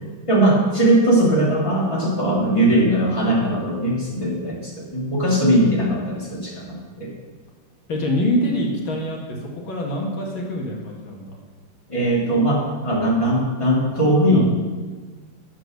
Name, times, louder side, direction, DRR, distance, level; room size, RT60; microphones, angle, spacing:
voice 1, 0.3-7.1 11.9-14.4, right 1 dB, 15° left, -5 dB, 3.0 m, -19 dB
voice 2, 7.9-11.4 14.3-14.4, equal, 90° left, -1 dB, 2.5 m, -25 dB
9.7 x 7.4 x 6.5 m, 1.3 s
omnidirectional pair, 2.1 m